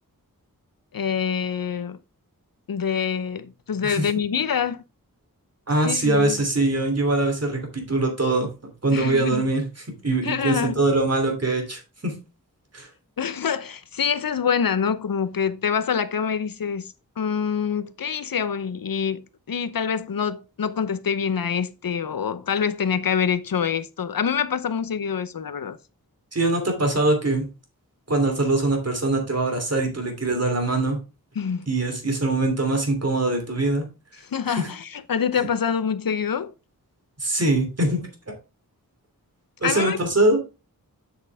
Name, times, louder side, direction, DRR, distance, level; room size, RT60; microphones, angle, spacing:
voice 1, 0.9-2.0 2.7-4.8 5.8-6.4 8.9-9.4 10.2-10.7 13.2-19.2 19.5-25.8 31.4-31.7 34.2-36.5 39.6-40.0, left 7 dB, 70° left, 0.8 m, -26 dB
voice 2, 5.7-8.5 8.8-12.1 12.7-12.9 26.3-27.5 28.1-31.0 31.7-33.9 34.5-34.7 35.4-35.5 37.2-38.0 39.6-40.4, right 2 dB, 45° right, 3.0 m, -23 dB
7.7 x 6.8 x 3.5 m
wide cardioid pair, 85°, 36 cm